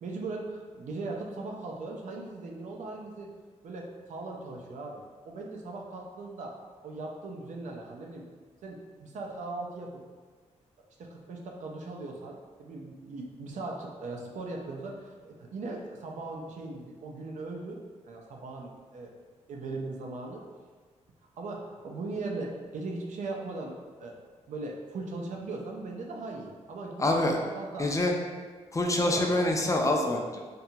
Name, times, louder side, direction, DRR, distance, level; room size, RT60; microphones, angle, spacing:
voice 1, 0.0-3.3 3.6-6.5 6.8-8.2 8.6-10.0 11.0-19.1 19.5-20.4 21.4-24.1 24.5-27.1 27.4-27.9 29.0-29.5, right 3 dB, 75° right, 0 dB, 0.4 m, -39 dB
voice 2, 27.0-27.4 27.8-28.1 28.7-30.4, left 1 dB, 25° left, 1 dB, 0.4 m, -26 dB
2.8 x 2.2 x 2.7 m, 1.5 s
cardioid pair, 70°, 13 cm